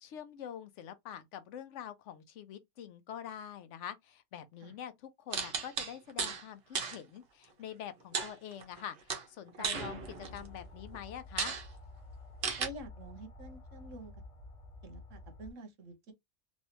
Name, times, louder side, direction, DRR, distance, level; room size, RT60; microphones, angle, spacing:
voice 1, 0.0-10.0 10.3-11.6, left 9 dB, 70° left, 0.9 m, -45 dB
sound 1, 5.3-6.4 6.8-7.0 8.1-8.8 9.1-10.5 10.9-11.0 11.4-11.7 12.4-12.7, right 6 dB, 55° right, 1.0 m, -35 dB
sound 2, 9.7-15.5, left 2 dB, 40° left, 0.5 m, -51 dB
voice 2, 12.6-14.1 14.8-16.1, right 2 dB, 75° right, 1.2 m, -48 dB
3.1 x 2.6 x 2.8 m
omnidirectional pair, 1.3 m